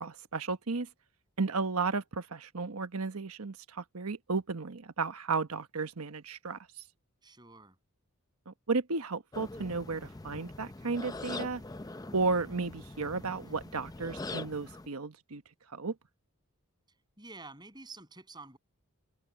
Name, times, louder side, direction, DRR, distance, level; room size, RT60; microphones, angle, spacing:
voice 1, 0.0-0.9 1.4-6.6 8.5-11.6 12.1-15.4 15.7-15.9, right 4 dB, 90° right, 1.2 m, -33 dB
voice 2, 7.2-7.8 17.2-18.6, right 3 dB, 20° right, 7.8 m, -49 dB
sound 1, 9.3-14.9, left 2 dB, 15° left, 0.5 m, -43 dB
head